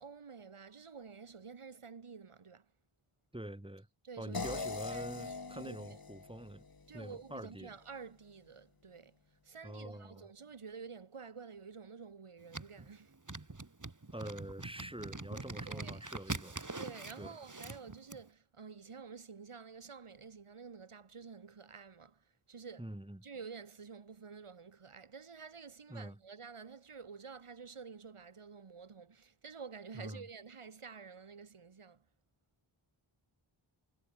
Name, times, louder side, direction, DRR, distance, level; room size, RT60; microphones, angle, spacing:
voice 1, 0.0-2.7 4.0-6.0 6.9-13.2 15.6-16.0 16.8-22.9 23.2-32.0, right 5 dB, 85° right, 4.6 m, -50 dB
voice 2, 3.3-3.9 4.2-6.6 6.9-7.7 9.6-10.2 14.1-16.6 17.2-17.3 22.8-23.2 25.9-26.2 29.9-30.2, right 1 dB, 10° right, 6.0 m, -45 dB
sound 1, 4.3-7.4, left 4 dB, 45° left, 2.8 m, -42 dB
sound 2, 12.5-18.2, right 3 dB, 35° right, 5.4 m, -44 dB
wide cardioid pair, 60°, 49 cm